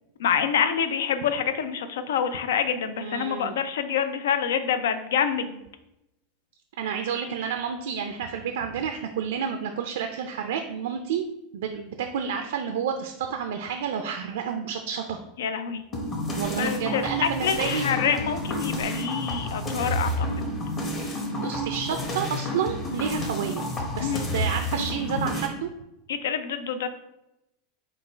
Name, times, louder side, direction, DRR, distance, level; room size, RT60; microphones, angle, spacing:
voice 1, 0.2-5.6 15.4-15.8 16.6-20.3 24.0-24.2 26.1-26.9, left 7 dB, 85° left, 10 dB, 0.4 m, -26 dB
voice 2, 3.0-3.6 6.8-11.3 11.5-15.2 16.3-18.0 21.0-23.6 23.9-25.7, right 7 dB, 85° right, 5 dB, 0.4 m, -30 dB
sound 1, 15.9-25.5, equal, 30° left, 1.0 m, -30 dB
3.9 x 2.3 x 4.4 m, 0.89 s
supercardioid pair, 130°, 0 cm